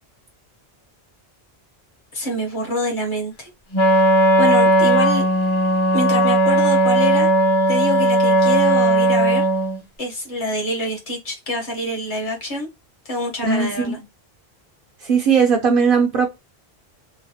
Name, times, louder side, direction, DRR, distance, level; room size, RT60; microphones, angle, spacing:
voice 1, 2.1-3.5 3.8-5.2 5.9-7.3 7.7-9.5 10.0-12.7 13.0-14.0, left 1 dB, 50° left, 1.1 m, -26 dB
Wind instrument woodwind instrument, 3.7-9.8, right 1 dB, 35° left, 0.6 m, -16 dB
voice 2, 13.4-14.0 15.0-16.3, right 5 dB, 60° right, 0.8 m, -18 dB
3.1 x 2.0 x 2.7 m
omnidirectional pair, 1.1 m